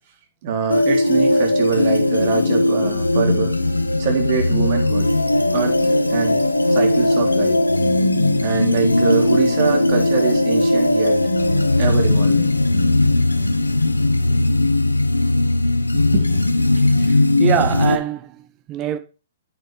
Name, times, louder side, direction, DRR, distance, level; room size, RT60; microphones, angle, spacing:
voice 1, 0.4-3.5 4.0-5.1 5.5-6.4 6.7-7.6 8.4-11.2 11.8-12.5 14.3-14.5 16.1-16.4 17.1-17.2, right 8 dB, 45° right, 3.7 m, -24 dB
sound 1, 0.7-18.0, left 2 dB, 85° left, 1.0 m, -18 dB
voice 2, 16.8-19.0, right 11 dB, 30° right, 1.5 m, -25 dB
9.1 x 8.4 x 3.5 m
figure-of-eight pair, 115°, 0 cm